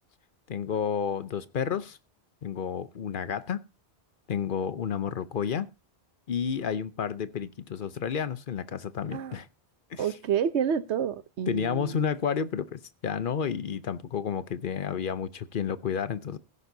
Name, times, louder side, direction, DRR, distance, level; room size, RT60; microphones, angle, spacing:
voice 1, 0.5-2.0 2.4-3.6 4.3-5.7 6.3-9.5 9.9-10.1 11.5-16.4, left 7 dB, 55° left, 0.9 m, -31 dB
voice 2, 10.0-12.0, right 8 dB, 85° right, 1.1 m, -29 dB
16.0 x 10.5 x 2.7 m
omnidirectional pair, 1.1 m